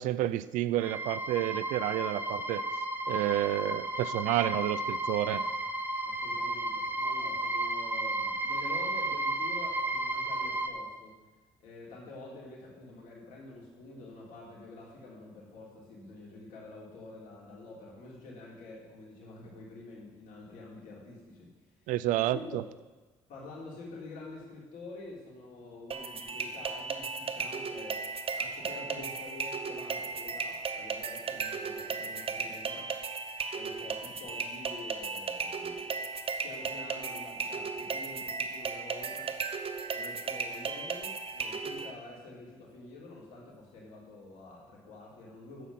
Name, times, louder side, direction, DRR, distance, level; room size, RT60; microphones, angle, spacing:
voice 1, 0.0-2.7 3.1-5.4 21.9-22.6, right 14 dB, 70° right, 16 dB, 0.5 m, -30 dB
sound 1, 0.8-10.7, right 1 dB, 15° right, 1.4 m, -33 dB
voice 2, 6.0-11.1 11.6-21.5 22.2-22.4 23.3-28.0 28.3-32.9 33.5-35.8 36.4-39.3 39.9-45.7, left 2 dB, 70° left, -3 dB, 3.6 m, -47 dB
sound 2, 25.9-41.9, right 5 dB, 45° right, 1.0 m, -36 dB
10.0 x 8.1 x 5.7 m, 1.2 s
hypercardioid pair, 50°, 14 cm